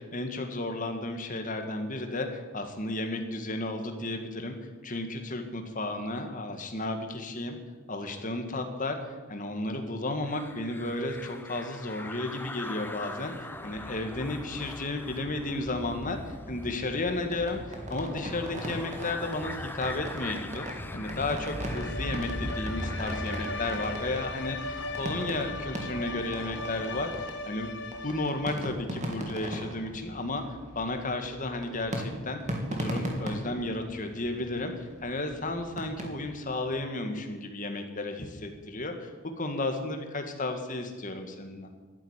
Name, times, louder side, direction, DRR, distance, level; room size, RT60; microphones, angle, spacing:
voice 1, 0.0-4.6 4.8-7.6 7.9-20.7 20.9-27.7 28.0-32.4 32.7-39.1 39.4-41.7, left 2 dB, 35° left, 5 dB, 1.9 m, -33 dB
sound 1, 10.2-27.3, left 1 dB, 10° left, 0.8 m, -40 dB
sound 2, 17.3-36.7, equal, 35° right, 2.7 m, -40 dB
Bowed string instrument, 21.5-28.6, left 3 dB, 55° left, 1.2 m, -38 dB
12.0 x 11.0 x 9.8 m, 1.4 s
head